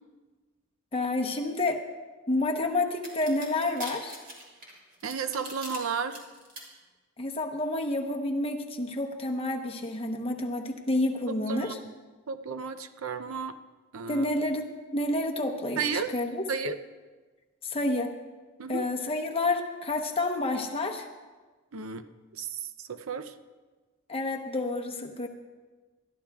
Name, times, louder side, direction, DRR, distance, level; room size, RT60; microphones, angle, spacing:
voice 1, 0.9-1.8 2.3-4.2 7.2-11.8 14.1-14.7 14.9-16.4 17.6-18.1 18.7-21.1 24.1-25.3, left 2 dB, 25° left, 2 dB, 0.9 m, -29 dB
sound 1, 3.0-5.8 6.1-6.6, right 1 dB, 40° right, 2.9 m, -41 dB
voice 2, 5.0-6.2 11.3-11.7 12.3-13.6 13.9-14.3 15.8-16.1 16.5-16.8 18.6-18.9 21.7-22.0 22.3-23.3, right 5 dB, 80° right, 11 dB, 0.6 m, -33 dB
21.5 x 13.0 x 2.4 m, 1.3 s
head